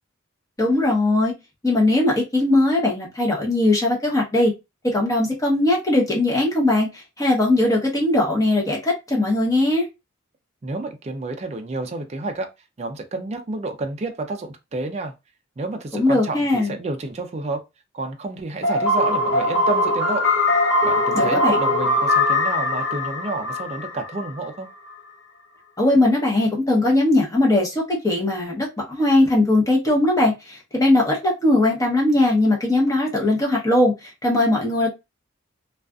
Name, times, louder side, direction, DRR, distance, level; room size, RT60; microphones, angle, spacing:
voice 1, 0.6-1.3 1.6-4.5 4.8-9.9 15.9-16.7 21.1-21.6 25.8-34.9, left 2 dB, 15° left, 0.8 m, -19 dB
voice 2, 10.6-12.5 12.8-15.1 15.6-17.6 17.9-20.3 20.8-24.7, right 2 dB, 30° right, 0.4 m, -30 dB
sound 1, 18.6-24.5, left 1 dB, 55° left, 1.2 m, -21 dB
2.4 x 2.4 x 2.3 m
head